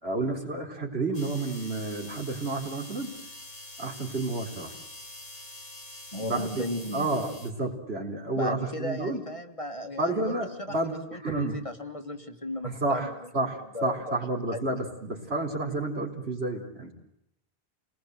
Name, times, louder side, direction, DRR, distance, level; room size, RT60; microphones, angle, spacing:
voice 1, 0.0-3.1 3.8-4.7 6.2-6.6 6.9-9.2 10.0-11.6 12.6-16.9, right 2 dB, 75° right, 2 dB, 4.4 m, -30 dB
sound 1, 1.1-7.5, left 1 dB, 55° left, 4.4 m, -45 dB
voice 2, 6.1-7.3 8.4-13.1 13.7-14.2 14.5-14.6, left 1 dB, 30° left, 6 dB, 1.7 m, -36 dB
28.5 x 20.0 x 7.9 m, 0.80 s
omnidirectional pair, 1.1 m